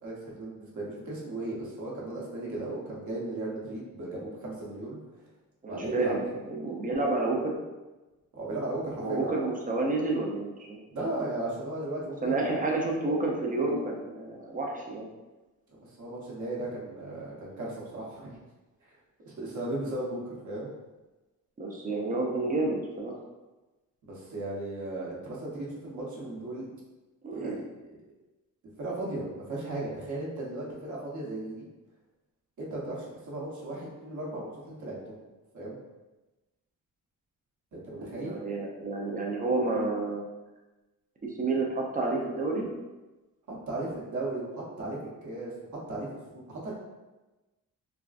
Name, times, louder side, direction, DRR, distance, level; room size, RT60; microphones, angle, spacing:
voice 1, 0.0-5.3 5.7-6.1 8.3-9.3 10.9-12.5 15.7-18.3 18.9-19.0 19.3-20.7 24.0-26.7 27.3-27.6 28.8-31.7 32.6-35.1 35.5-35.8 37.7-38.4 43.5-45.5 45.9-46.7, right 2 dB, 60° right, -4 dB, 0.9 m, -36 dB
voice 2, 5.6-7.6 9.0-10.8 12.2-15.1 21.6-23.2 27.2-27.6 38.0-40.2 41.4-42.7, right 2 dB, 25° right, -1 dB, 0.4 m, -30 dB
3.4 x 2.4 x 2.4 m, 1.1 s
wide cardioid pair, 165°, 33 cm